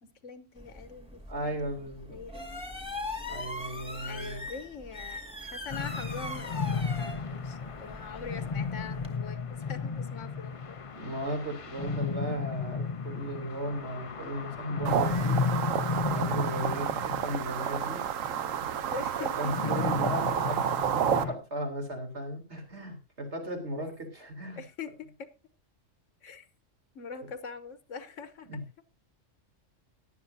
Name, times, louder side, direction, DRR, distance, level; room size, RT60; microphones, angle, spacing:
voice 1, 0.0-1.7 2.1-2.7 4.0-10.9 18.9-20.0 24.6-25.1 26.2-26.5 26.9-28.6, left 5 dB, 75° left, 1.3 m, -43 dB
sound 1, 0.6-9.2, left 2 dB, 5° right, 1.9 m, -41 dB
voice 2, 1.3-2.2 3.3-4.4 10.9-15.7 16.1-18.0 19.2-24.6 28.5-28.6, equal, 60° right, 3.8 m, -36 dB
sound 2, 5.7-21.3, left 5 dB, 35° left, 0.6 m, -34 dB
sound 3, 14.8-21.2, right 9 dB, 85° right, 1.2 m, -30 dB
17.5 x 11.0 x 2.7 m
omnidirectional pair, 1.3 m